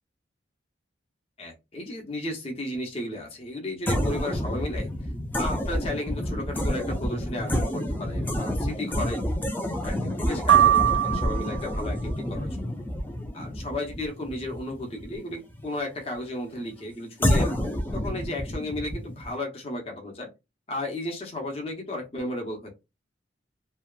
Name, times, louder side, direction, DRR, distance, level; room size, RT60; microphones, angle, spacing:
voice 1, 1.4-4.9 5.3-9.2 9.8-12.7 13.3-20.3 20.7-22.7, left 1 dB, 30° left, 1 dB, 0.7 m, -34 dB
sound 1, 3.9-15.6 17.2-19.3, left 1 dB, 10° left, 0.3 m, -29 dB
sound 2, 10.5-11.8, right 11 dB, 70° right, 0.3 m, -21 dB
2.8 x 2.2 x 2.3 m, 0.24 s
head